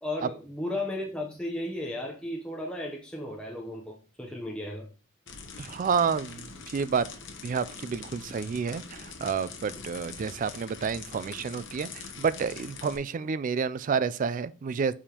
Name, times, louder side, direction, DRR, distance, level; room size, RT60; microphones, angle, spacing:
voice 1, 0.0-4.9, left 1 dB, 5° left, 0.7 m, -35 dB
sound 1, 5.3-13.0, left 5 dB, 60° left, 0.9 m, -44 dB
voice 2, 5.6-7.1 7.4-15.0, right 6 dB, 40° right, 0.3 m, -29 dB
6.9 x 4.8 x 2.9 m
head